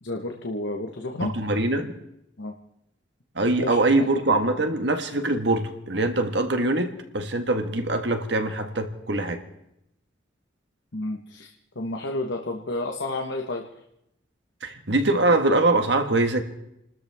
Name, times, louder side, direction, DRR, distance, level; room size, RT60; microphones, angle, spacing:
voice 1, 0.0-1.3 2.4-2.5 3.5-4.1 10.9-13.6, left 2 dB, 75° left, 1.3 m, -31 dB
voice 2, 1.2-1.9 3.3-9.4 14.6-16.4, right 2 dB, 65° right, 1.6 m, -23 dB
29.5 x 13.0 x 3.6 m
head